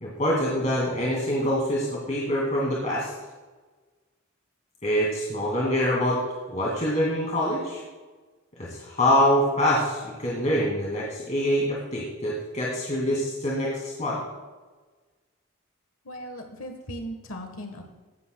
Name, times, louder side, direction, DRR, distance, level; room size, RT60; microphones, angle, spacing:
voice 1, 0.0-3.1 4.8-6.2 6.5-7.8 8.6-14.2, equal, 35° left, -4 dB, 2.2 m, -25 dB
voice 2, 16.0-17.8, equal, 80° left, 5 dB, 1.3 m, -37 dB
15.5 x 11.5 x 2.2 m, 1.3 s
head